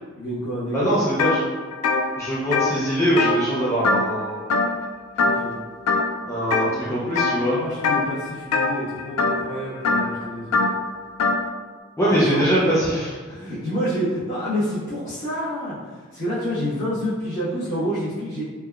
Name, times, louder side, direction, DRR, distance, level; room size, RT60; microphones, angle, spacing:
voice 1, 0.2-1.2 5.2-5.6 7.6-10.6 12.0-12.6 12.9-13.0 13.3-15.8 16.1-18.5, equal, 50° left, -13 dB, 0.9 m, -28 dB
voice 2, 0.7-1.4 2.2-4.4 6.2-7.6 12.0-13.1, right 1 dB, 15° left, -9 dB, 0.4 m, -22 dB
sound 1, 1.2-1.4 1.7-4.2 4.5-4.9 5.2-5.5 5.9-6.7 7.2-7.5 7.8-11.4, left 3 dB, 90° left, 0.3 m, -22 dB
3.4 x 2.2 x 2.3 m, 1.4 s
head